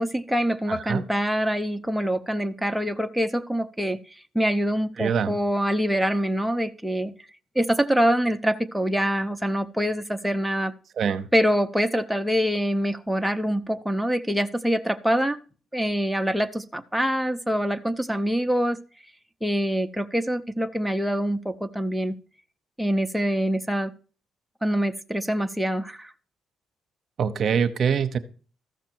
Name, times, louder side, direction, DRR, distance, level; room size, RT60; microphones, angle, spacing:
voice 1, 0.0-4.0 4.3-7.1 7.5-10.7 11.3-15.4 15.7-18.8 19.4-22.1 22.8-23.9 24.6-26.1, equal, ahead, 6 dB, 0.7 m, -25 dB
voice 2, 0.7-1.0 5.0-5.4 11.0-11.3 27.2-28.2, right 7 dB, 60° right, 11 dB, 0.8 m, -24 dB
14.0 x 5.9 x 4.5 m, 0.38 s
cardioid pair, 90°, 0 cm